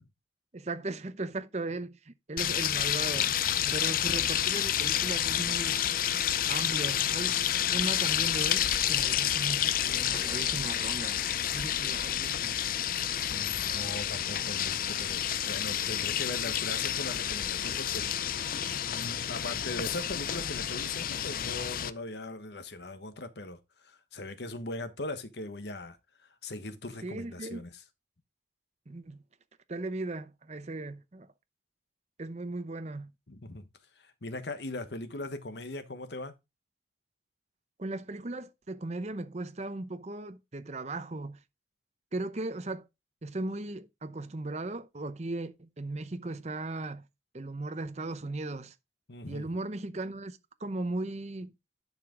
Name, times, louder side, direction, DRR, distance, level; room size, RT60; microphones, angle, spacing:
voice 1, 0.5-3.4 3.7-5.8 6.5-7.4 7.7-11.2 11.5-12.5 27.0-27.6 28.9-29.2 29.7-31.3 32.2-33.1 37.8-41.4 42.1-42.9 43.2-47.0 47.3-48.7 49.3-51.5, right 2 dB, 40° right, 0.7 m, -37 dB
sound 1, 2.4-21.9, left 10 dB, 50° left, 0.5 m, -29 dB
voice 2, 13.3-18.1 18.9-26.0 26.4-27.8 33.3-33.6 34.0-36.4 49.1-49.5, left 2 dB, 70° left, 1.2 m, -40 dB
10.5 x 4.9 x 3.7 m
head